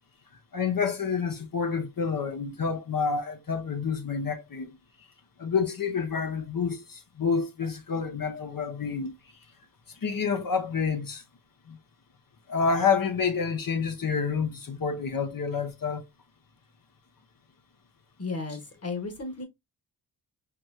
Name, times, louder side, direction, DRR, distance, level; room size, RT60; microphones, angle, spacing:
voice 1, 0.5-4.7 5.4-9.1 10.0-11.2 11.7-11.8 12.5-16.0, left 5 dB, 50° left, 1.0 m, -28 dB
voice 2, 18.2-19.4, left 3 dB, 35° left, 1.6 m, -34 dB
4.2 x 3.1 x 2.7 m
cardioid pair, 75°, 43 cm